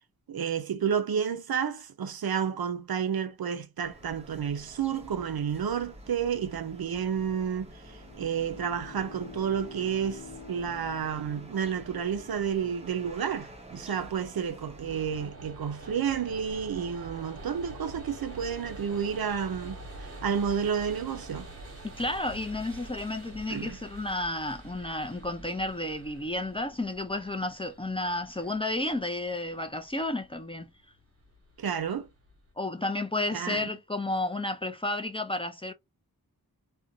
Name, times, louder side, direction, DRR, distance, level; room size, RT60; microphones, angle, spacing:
voice 1, 0.3-10.2 10.5-21.5 23.5-23.8 31.6-32.1 33.3-33.6, right 7 dB, 75° right, 0.6 m, -31 dB
sound 1, 3.8-15.3, equal, 15° right, 0.8 m, -48 dB
Bowed string instrument, 7.8-12.2, left 4 dB, 75° left, 0.7 m, -47 dB
sound 2, 14.9-32.5, right 2 dB, 45° right, 1.2 m, -46 dB
voice 2, 21.8-30.7 32.6-35.7, left 2 dB, 15° left, 0.4 m, -32 dB
2.5 x 2.1 x 2.6 m
wide cardioid pair, 90°, 36 cm